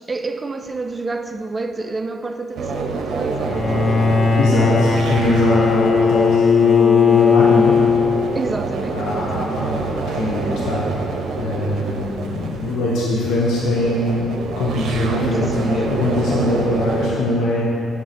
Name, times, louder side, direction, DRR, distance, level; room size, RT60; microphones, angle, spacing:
voice 1, 0.0-3.9 8.3-9.6 15.2-15.8, right 3 dB, 25° right, 7 dB, 0.4 m, -29 dB
sound 1, 2.6-17.1, right 4 dB, 70° right, 0.7 m, -27 dB
Bowed string instrument, 3.4-8.7, left 6 dB, 40° left, 0.5 m, -17 dB
voice 2, 4.4-7.8 8.9-10.8 11.3-14.3 14.6-17.6, left 1 dB, 80° left, -5 dB, 1.0 m, -22 dB
6.8 x 3.6 x 6.0 m, 2.7 s
cardioid pair, 90°, 0 cm